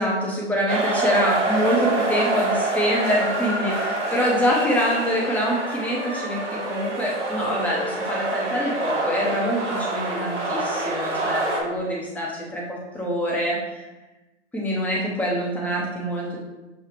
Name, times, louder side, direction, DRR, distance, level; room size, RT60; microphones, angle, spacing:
voice 1, 0.0-6.4 6.6-13.8 14.5-16.4, equal, 5° left, -4 dB, 0.7 m, -25 dB
sound 1, 0.7-11.6, right 2 dB, 75° right, 1.2 m, -26 dB
6.7 x 2.4 x 3.0 m, 1.1 s
figure-of-eight pair, 110°, 36 cm